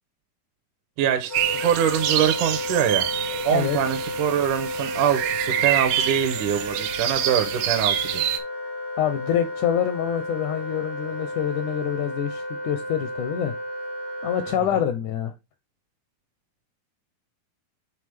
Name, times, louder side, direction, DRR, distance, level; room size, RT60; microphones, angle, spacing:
voice 1, 1.0-3.1 3.4-8.2 14.6-14.8, right 9 dB, 75° right, 2.0 m, -24 dB
Wind instrument woodwind instrument, 1.3-14.6, left 2 dB, 55° right, 0.4 m, -33 dB
sound 1, 1.3-8.4, right 11 dB, 90° right, 2.5 m, -27 dB
voice 2, 9.0-13.6 14.2-15.3, left 9 dB, 85° left, 1.8 m, -26 dB
8.7 x 3.6 x 3.3 m
omnidirectional pair, 4.1 m